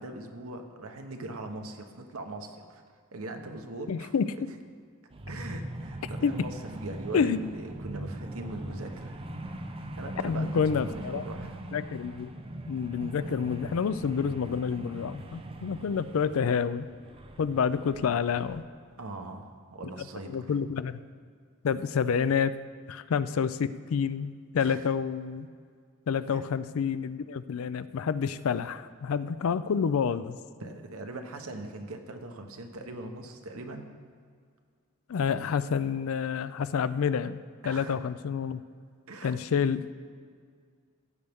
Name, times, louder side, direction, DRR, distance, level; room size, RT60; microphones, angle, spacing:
voice 1, 0.0-2.8 3.1-4.5 5.3-9.2 10.0-11.6 19.0-20.5 24.6-24.8 26.3-26.5 30.6-33.9 37.6-38.0 39.1-39.4, right 2 dB, 80° right, 5 dB, 1.0 m, -41 dB
voice 2, 3.9-4.5 6.2-6.4 7.1-7.5 10.2-11.2 11.7-12.3 12.6-16.9 17.4-18.6 20.3-21.0 21.6-22.5 22.9-25.5 26.1-30.4 35.1-38.6 39.2-39.9, left 6 dB, 70° left, 14 dB, 0.4 m, -28 dB
sound 1, 5.1-18.6, right 1 dB, 25° right, 0.6 m, -40 dB
15.5 x 8.2 x 3.6 m, 2.1 s
head